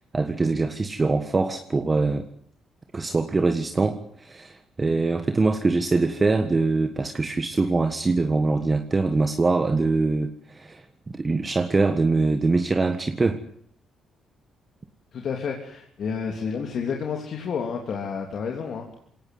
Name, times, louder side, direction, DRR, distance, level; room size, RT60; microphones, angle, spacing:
voice 1, 0.1-2.3 2.9-10.8 11.1-13.4, right 3 dB, 25° right, 7 dB, 1.6 m, -23 dB
voice 2, 15.1-18.9, left 6 dB, 60° left, 2 dB, 3.2 m, -30 dB
22.0 x 18.0 x 9.5 m, 0.64 s
cardioid pair, 90°, 0 cm